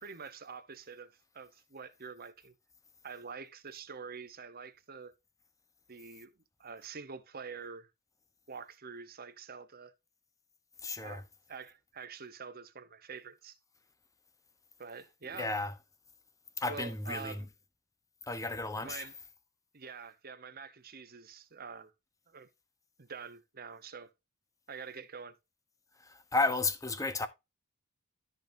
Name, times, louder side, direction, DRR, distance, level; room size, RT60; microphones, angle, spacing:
voice 1, 0.0-2.5 3.0-5.1 5.9-7.9 8.5-9.9 11.0-13.6 14.8-15.5 16.7-17.5 18.8-19.1 19.7-21.9 22.3-22.5 23.0-24.1 24.7-25.4, right 5 dB, 45° right, 1.0 m, -46 dB
voice 2, 10.8-11.2 15.4-15.7 16.6-17.4 18.3-19.1 26.0-27.3, left 3 dB, 15° left, 1.0 m, -33 dB
13.0 x 5.3 x 2.7 m
head